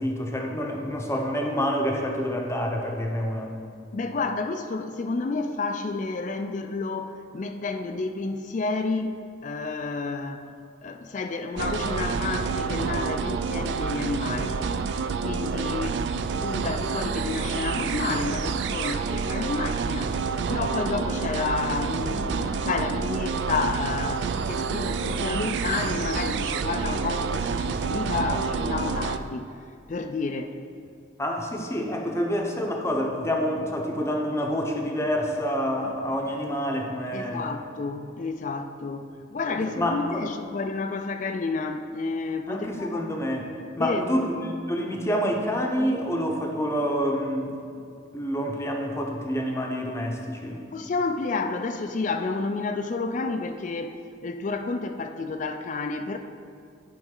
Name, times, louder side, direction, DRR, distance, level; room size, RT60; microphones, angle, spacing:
voice 1, 0.0-3.5 31.2-37.5 39.7-40.3 42.5-43.4 43.8-47.5 48.1-50.6, equal, 15° left, 1 dB, 0.7 m, -27 dB
voice 2, 3.9-10.5 10.8-14.6 15.2-20.1 20.5-29.5 29.9-30.6 37.1-43.0 43.8-44.3 50.7-53.9 54.2-56.2, left 3 dB, 40° left, 7 dB, 0.4 m, -30 dB
sound 1, 11.6-29.2, right 5 dB, 60° right, 0.3 m, -28 dB
10.5 x 5.3 x 3.8 m, 2.4 s
head